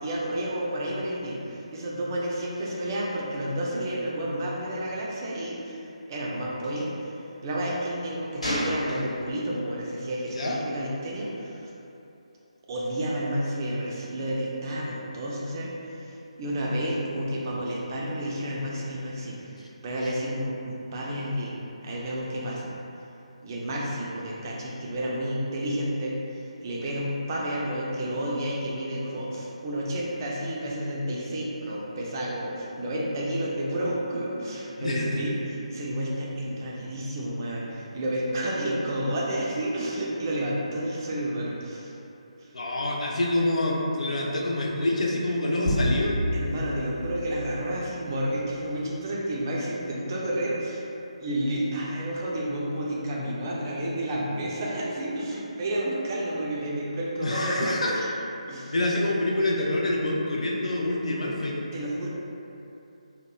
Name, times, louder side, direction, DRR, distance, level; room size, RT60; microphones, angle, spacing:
voice 1, 0.0-7.2 7.4-11.7 12.7-21.5 21.8-22.7 23.4-41.9 42.4-42.5 46.3-50.9 51.2-57.8 58.5-58.7 61.7-62.1, right 1 dB, 30° right, -4 dB, 0.4 m, -31 dB
Gunshot gunfire, 6.6-6.8 8.4-9.4 10.3-10.5, equal, 85° left, 1.1 m, -31 dB
voice 2, 34.8-35.2 42.5-46.1 57.2-58.3 58.7-61.5, left 1 dB, 65° left, -2 dB, 0.4 m, -26 dB
sound 1, 45.7-48.5, left 1 dB, 30° left, 0.7 m, -30 dB
2.9 x 2.0 x 2.2 m, 2.8 s
figure-of-eight pair, 155°, 4 cm